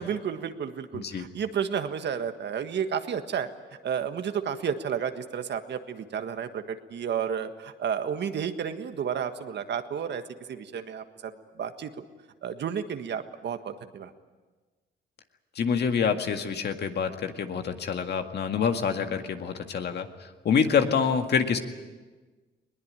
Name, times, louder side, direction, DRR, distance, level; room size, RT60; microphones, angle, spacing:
voice 1, 0.0-3.5 3.8-10.2 10.5-12.0 12.4-14.1, right 7 dB, 60° right, 8 dB, 1.6 m, -32 dB
voice 2, 15.6-20.1 20.5-21.6, left 6 dB, 55° left, 6 dB, 2.0 m, -26 dB
21.0 x 19.5 x 9.0 m, 1.3 s
cardioid pair, 90°, 20 cm